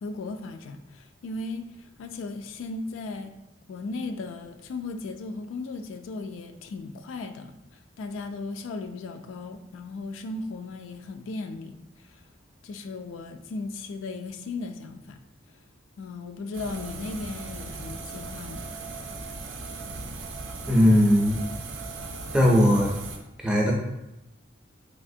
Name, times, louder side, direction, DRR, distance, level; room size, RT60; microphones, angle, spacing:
voice 1, 0.0-3.3 3.7-7.6 8.0-12.2 12.6-15.2 16.0-18.7, left 3 dB, 85° left, 7 dB, 0.3 m, -36 dB
sound 1, 16.5-23.2, right 3 dB, 80° right, 0.5 m, -38 dB
voice 2, 20.7-21.4 22.3-23.0 23.4-23.7, equal, 5° right, -2 dB, 0.4 m, -19 dB
3.3 x 2.8 x 2.6 m, 0.92 s
head